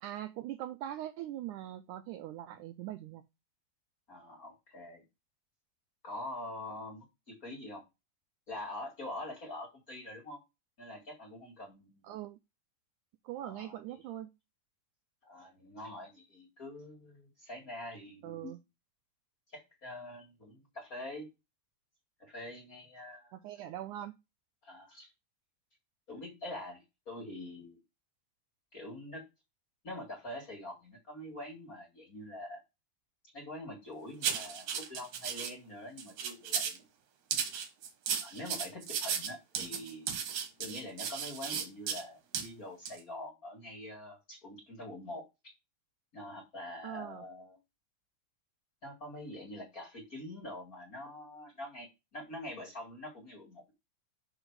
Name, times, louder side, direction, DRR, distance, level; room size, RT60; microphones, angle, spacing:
voice 1, 0.0-3.3 12.0-12.4 13.2-14.3 18.2-18.6 23.3-24.2 46.8-47.3, right 12 dB, 80° right, 1.8 m, -42 dB
voice 2, 4.1-5.0 6.0-7.8 8.5-10.4 10.8-12.0 13.4-14.0 15.2-18.5 19.5-21.3 22.2-23.3 24.6-25.1 26.1-27.8 28.7-29.2 29.8-32.6 33.3-36.8 38.2-40.1 40.6-45.5 46.1-47.6 48.8-53.7, left 1 dB, 30° left, 1.8 m, -45 dB
sound 1, 34.2-35.5 36.0-36.8 37.3-42.0 42.3-42.5 42.9-43.0, right 8 dB, 65° right, 2.4 m, -35 dB
6.4 x 5.3 x 4.7 m
omnidirectional pair, 4.1 m